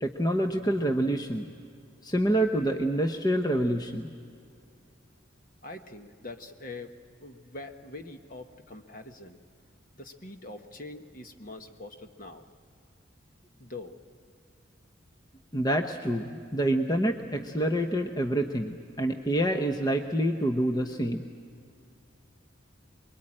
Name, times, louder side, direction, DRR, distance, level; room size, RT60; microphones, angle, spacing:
voice 1, 0.0-1.5 2.0-4.1 15.5-21.2, right 1 dB, 20° left, 4 dB, 0.8 m, -27 dB
voice 2, 5.6-6.9 7.2-9.4 9.9-12.4 13.6-14.0, left 2 dB, 45° left, 6 dB, 1.3 m, -43 dB
24.5 x 22.5 x 8.8 m, 2.4 s
head